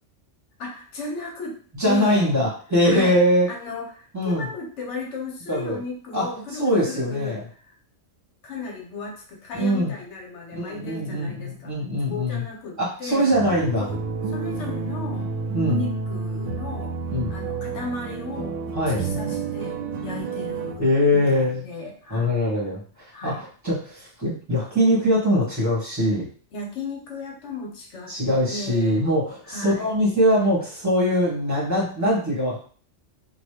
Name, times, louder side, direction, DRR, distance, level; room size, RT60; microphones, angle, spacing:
voice 1, 0.6-1.6 1.8-2.4 2.8-3.2 3.5-7.8 8.4-11.7 12.1-14.0 14.3-15.3 15.7-16.9 17.3-18.6 19.0-22.3 23.1-23.5 26.5-28.1 28.5-29.1 29.4-29.9, left 3 dB, 70° left, 0 dB, 1.1 m, -35 dB
voice 2, 1.8-3.5 4.1-4.5 5.5-5.8 6.1-6.3 6.6-7.4 9.5-9.9 10.5-12.4 12.8-13.8 15.5-15.8 17.1-17.4 18.7-19.1 20.8-21.6 22.1-22.8 23.2-26.3 28.1-32.6, equal, 15° right, -6 dB, 1.3 m, -22 dB
sound 1, 13.3-20.8, right 4 dB, 90° right, 1.0 m, -30 dB
3.0 x 2.4 x 3.2 m, 0.43 s
omnidirectional pair, 1.3 m